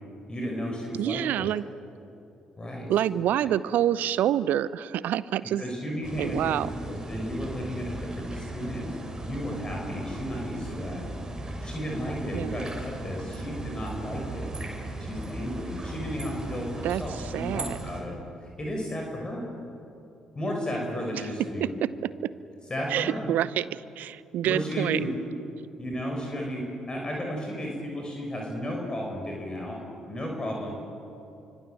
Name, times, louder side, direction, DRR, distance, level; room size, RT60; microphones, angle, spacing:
voice 1, 0.3-1.5 2.6-2.9 3.4-3.5 5.4-6.5 6.8-8.9 9.2-11.1 11.6-14.5 15.0-19.5 20.3-21.7 22.7-23.3 24.4-25.1 25.8-29.8 30.1-30.7, equal, 25° left, 0 dB, 6.3 m, -33 dB
voice 2, 1.0-1.6 2.9-5.6 6.2-6.7 12.3-12.6 16.8-17.0 17.3-17.8 22.9-25.0, right 11 dB, 55° right, 19 dB, 0.8 m, -27 dB
sound 1, 6.0-18.0, right 1 dB, 20° right, 7.2 m, -37 dB
29.0 x 25.0 x 7.9 m, 2.8 s
figure-of-eight pair, 45°, 3 cm